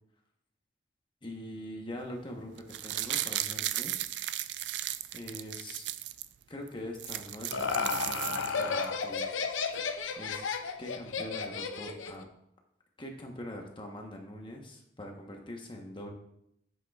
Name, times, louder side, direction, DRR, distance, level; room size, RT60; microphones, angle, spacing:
voice 1, 1.2-3.9 5.1-5.8 6.5-9.3 10.2-10.4 10.8-12.3 13.0-16.1, left 1 dB, 25° left, 2 dB, 1.0 m, -43 dB
sound 1, 2.6-6.3 6.7-6.8 6.9-8.8 9.2-9.3, right 13 dB, 60° right, 0.3 m, -35 dB
Laughter, 7.1-12.2, left 5 dB, 80° left, 0.7 m, -33 dB
9.6 x 7.8 x 2.3 m, 0.77 s
head